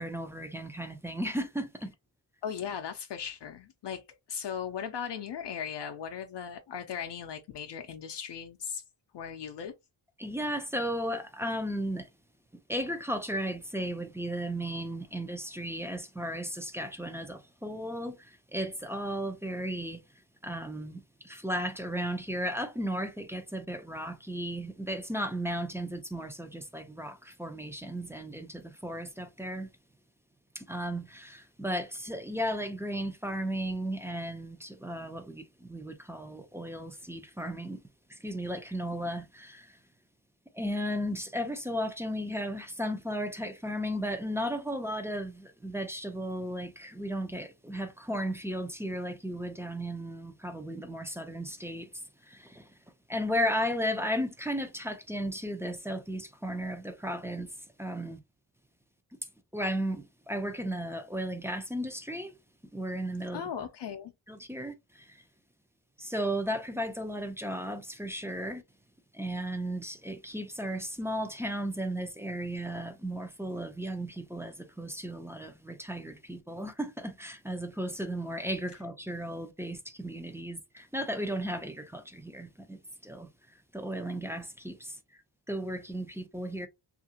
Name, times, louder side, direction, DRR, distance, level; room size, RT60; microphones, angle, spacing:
voice 1, 0.0-1.9 10.2-12.1 12.7-20.0 20.4-29.7 30.5-37.8 38.1-39.8 40.5-52.7 53.1-57.5 57.8-58.2 59.5-62.3 62.7-63.5 64.3-65.2 66.0-68.6 69.1-83.3 83.7-85.0 85.5-86.7, equal, 5° right, 0.4 m, -35 dB
voice 2, 2.4-4.0 4.3-8.8 9.1-9.7 63.3-64.1, left 7 dB, 65° left, 0.5 m, -37 dB
2.7 x 2.5 x 2.7 m
wide cardioid pair, 115°, 46 cm